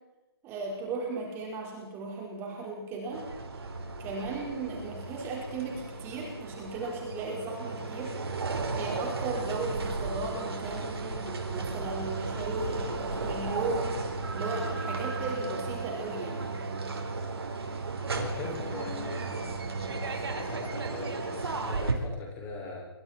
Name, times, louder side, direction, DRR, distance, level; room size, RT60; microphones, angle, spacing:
voice 1, 0.4-3.3 4.0-8.1 8.7-16.5 18.6-19.1, right 3 dB, 20° right, -1 dB, 4.7 m, -36 dB
sound 1, 3.1-21.9, right 3 dB, 75° right, 4.6 m, -35 dB
voice 2, 18.1-19.4 19.8-22.9, left 2 dB, 15° left, 0 dB, 5.7 m, -40 dB
29.0 x 22.5 x 4.4 m, 1.0 s
hypercardioid pair, 155°, 13 cm